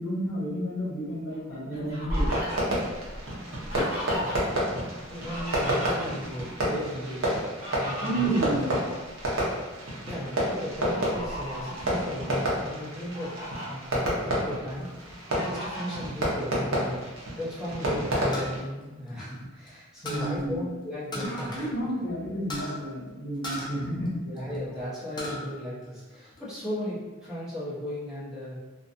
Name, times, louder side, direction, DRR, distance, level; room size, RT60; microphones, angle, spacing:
voice 1, 0.0-2.3 8.0-8.7 20.0-20.6 21.1-24.4, right 1 dB, 75° left, -6 dB, 1.0 m, -31 dB
Fowl, 1.3-4.6 4.9-6.4 7.3-9.4 9.9-10.1 10.7-11.8 12.4-12.5 12.9-13.7 14.2-14.9 15.3-16.0, equal, 35° right, 0.8 m, -35 dB
Fireworks, 2.1-18.6, equal, 85° right, 0.8 m, -30 dB
voice 2, 3.9-4.4 5.1-7.3 7.7-8.3 10.0-21.6 24.2-28.6, equal, 5° right, -11 dB, 0.9 m, -36 dB
sound 1, 18.3-19.7 20.1-20.4 21.1-21.7 22.0-22.1 22.5-22.8 23.4-24.6 24.9-25.4 25.9-26.6, left 1 dB, 20° left, 0.5 m, -37 dB
2.4 x 2.3 x 2.6 m, 1.2 s
head